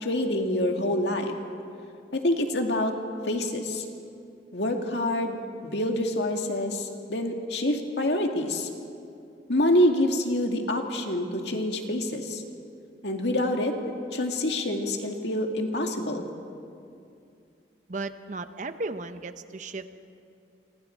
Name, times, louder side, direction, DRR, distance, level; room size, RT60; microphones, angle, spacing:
voice 1, 0.0-1.3 2.1-2.9 3.3-3.8 4.5-5.4 5.6-8.7 9.5-12.4 13.0-13.7 14.1-16.3, left 1 dB, 70° left, 3 dB, 2.1 m, -26 dB
voice 2, 17.9-19.9, right 3 dB, 45° right, 10 dB, 0.8 m, -35 dB
28.5 x 25.0 x 4.5 m, 2.5 s
head